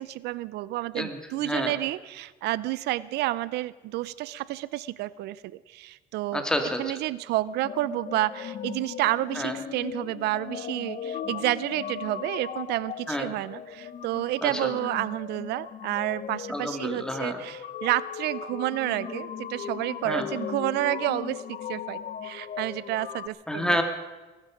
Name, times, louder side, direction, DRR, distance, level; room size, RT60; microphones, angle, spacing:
voice 1, 0.0-6.4 6.8-23.8, right 16 dB, 80° right, 19 dB, 0.5 m, -30 dB
voice 2, 0.9-1.8 6.3-7.0 9.4-9.6 13.1-13.3 14.4-14.7 16.5-17.4 20.0-20.3 23.5-23.8, left 1 dB, 5° left, 4 dB, 2.1 m, -29 dB
sound 1, 7.6-23.3, left 8 dB, 50° left, 0.9 m, -38 dB
20.5 x 13.0 x 5.1 m, 1.2 s
cardioid pair, 110°, 17 cm